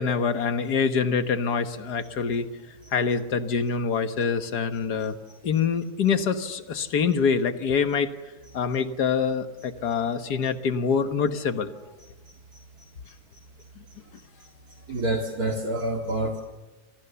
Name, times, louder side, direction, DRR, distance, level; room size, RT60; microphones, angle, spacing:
voice 1, 0.0-2.5 2.9-5.2 5.4-8.1 8.5-11.7, left 6 dB, 90° left, 9 dB, 1.9 m, -25 dB
voice 2, 14.9-16.4, right 1 dB, 70° right, 2 dB, 2.5 m, -27 dB
28.5 x 26.5 x 7.0 m, 1.2 s
omnidirectional pair, 1.7 m